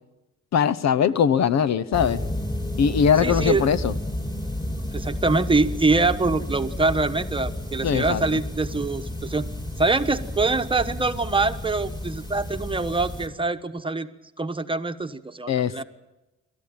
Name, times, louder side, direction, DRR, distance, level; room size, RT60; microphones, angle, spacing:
voice 1, 0.5-2.2 2.8-3.9 7.8-8.4 15.5-15.8, left 7 dB, 60° left, 16 dB, 1.0 m, -21 dB
sound 1, 1.9-13.3, left 1 dB, 15° left, 4.2 m, -31 dB
voice 2, 3.2-3.7 4.7-9.5 9.8-14.1 14.4-15.8, right 3 dB, 15° right, 8 dB, 1.3 m, -24 dB
27.5 x 13.0 x 8.9 m, 1.0 s
cardioid pair, 90°, 30 cm